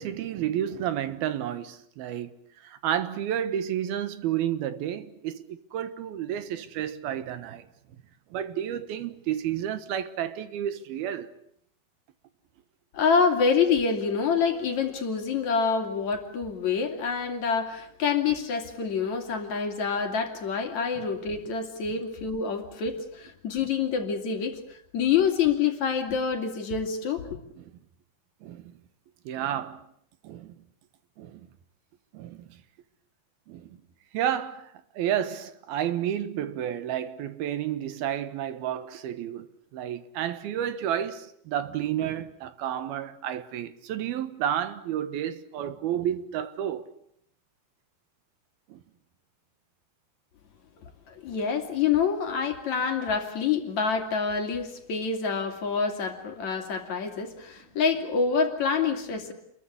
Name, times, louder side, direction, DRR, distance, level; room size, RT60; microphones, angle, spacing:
voice 1, 0.0-2.3 2.6-7.7 8.3-11.3 27.6-27.7 28.4-28.7 29.3-29.9 30.2-30.5 31.2-31.4 32.1-32.6 33.5-33.8 34.1-39.5 39.7-46.9 48.7-48.8, right 10 dB, 80° right, 3.1 m, -31 dB
voice 2, 12.9-27.4 50.8-59.3, left 6 dB, 50° left, 3.6 m, -27 dB
28.5 x 22.0 x 8.5 m
omnidirectional pair, 4.4 m